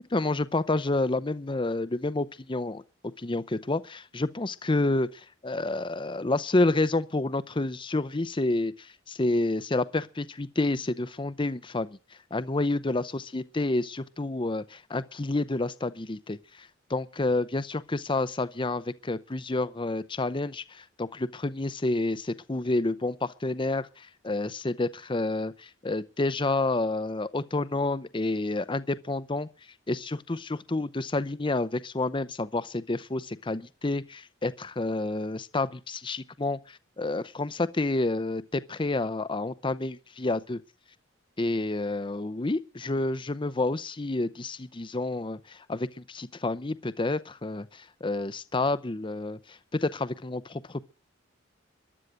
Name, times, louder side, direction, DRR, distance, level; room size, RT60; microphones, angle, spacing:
voice 1, 0.1-2.8 3.2-11.9 12.3-29.5 29.9-40.6 41.4-50.8, left 2 dB, 25° left, 0.7 m, -29 dB
14.5 x 11.5 x 6.4 m
head